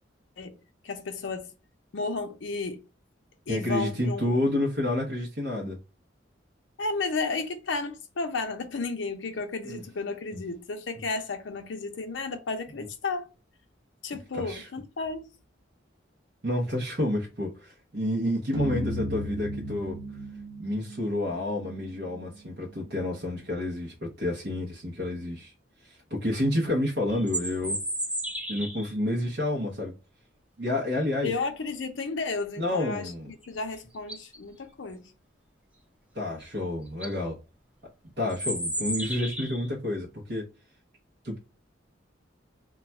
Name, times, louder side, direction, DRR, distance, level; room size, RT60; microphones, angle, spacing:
voice 1, 0.8-1.5 1.9-2.8 3.5-4.4 6.8-13.3 14.0-15.3 31.2-33.1 33.5-35.1, left 3 dB, 75° left, 0.5 m, -33 dB
voice 2, 3.5-5.8 9.6-9.8 14.3-14.7 16.4-20.0 20.6-25.5 25.8-27.8 28.5-29.9 30.6-31.3 32.6-33.3 36.1-37.4 38.2-40.5 41.2-41.4, left 1 dB, 55° right, 0.8 m, -29 dB
sound 1, 18.5-22.9, equal, 85° right, 0.9 m, -37 dB
sound 2, 27.1-28.9 33.4-33.5 33.9-34.4 36.4-36.5 36.9-37.1 38.3-39.7, right 1 dB, 5° right, 0.7 m, -33 dB
2.3 x 2.2 x 3.9 m
head